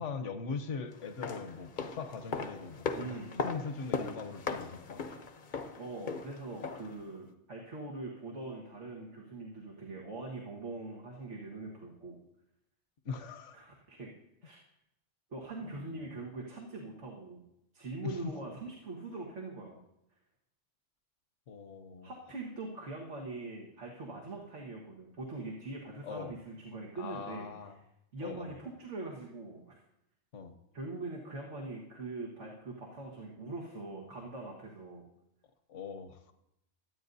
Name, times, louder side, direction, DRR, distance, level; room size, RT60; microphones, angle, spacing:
voice 1, 0.0-5.0 13.0-13.6 15.6-16.2 18.0-18.5 21.5-22.1 26.0-26.3 27.0-27.8 28.2-28.5 30.3-30.5 35.7-36.2, left 5 dB, 80° left, 7 dB, 1.3 m, -41 dB
sound 1, 1.0-7.0 7.3-7.4, left 4 dB, 45° left, 0.8 m, -38 dB
voice 2, 2.9-3.3 5.8-12.2 13.5-14.1 14.4-14.6 15.3-17.4 17.7-19.8 22.0-27.5 28.1-29.8 30.7-35.1, right 2 dB, 75° right, -2 dB, 1.9 m, -42 dB
22.5 x 9.3 x 2.7 m, 0.83 s
omnidirectional pair, 1.2 m